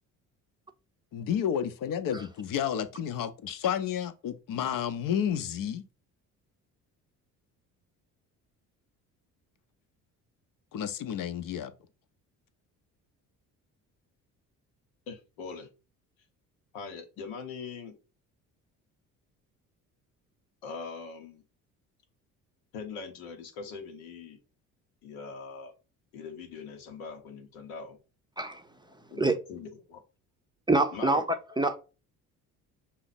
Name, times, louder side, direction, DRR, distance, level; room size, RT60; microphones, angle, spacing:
voice 1, 1.1-5.8 10.7-11.7, left 9 dB, 55° left, 0.7 m, -31 dB
voice 2, 15.1-15.7 16.7-18.0 20.6-21.4 22.7-24.4 25.0-25.7 26.1-28.0 29.1-29.2 29.5-30.0 30.9-31.3, left 5 dB, 85° left, 1.0 m, -41 dB
voice 3, 30.7-31.8, right 2 dB, 10° right, 0.6 m, -25 dB
5.6 x 2.1 x 4.1 m
hypercardioid pair, 60°, 40 cm